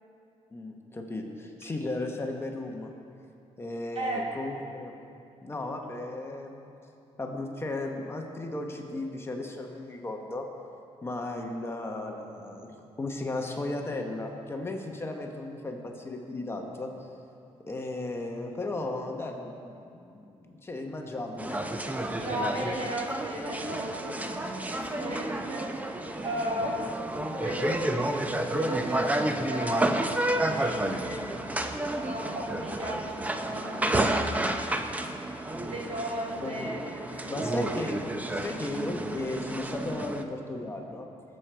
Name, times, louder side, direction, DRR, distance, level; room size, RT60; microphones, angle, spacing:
voice 1, 0.5-2.9 3.6-4.9 5.4-6.7 7.2-10.5 11.0-17.1 17.7-21.7 35.5-35.8 36.4-36.7 37.3-41.1, left 2 dB, 20° left, 2 dB, 1.1 m, -35 dB
voice 2, 3.9-4.3 22.2-31.3 31.8-34.1 35.7-37.6, equal, 60° right, -3 dB, 3.1 m, -35 dB
sound 1, 21.4-40.2, right 1 dB, 15° right, 0.7 m, -31 dB
19.5 x 7.6 x 4.6 m, 2.6 s
cardioid pair, 125°, 12 cm